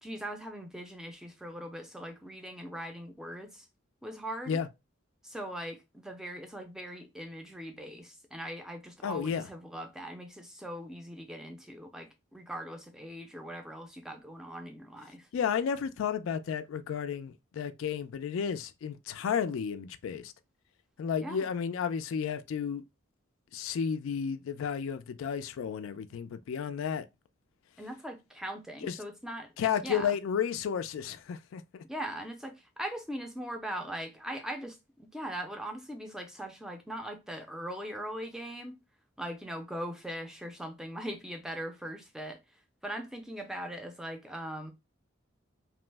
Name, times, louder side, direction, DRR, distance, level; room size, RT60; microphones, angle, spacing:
voice 1, 0.0-3.7 4.0-4.6 5.2-15.3 21.2-21.4 27.8-30.2 31.9-38.8 39.2-42.4 42.8-44.7, equal, 5° right, 0.4 m, -40 dB
voice 2, 9.0-9.5 15.3-20.3 21.0-22.8 23.5-27.0 28.8-28.9 29.6-31.8, left 7 dB, 80° left, 0.3 m, -32 dB
3.0 x 2.0 x 3.2 m
head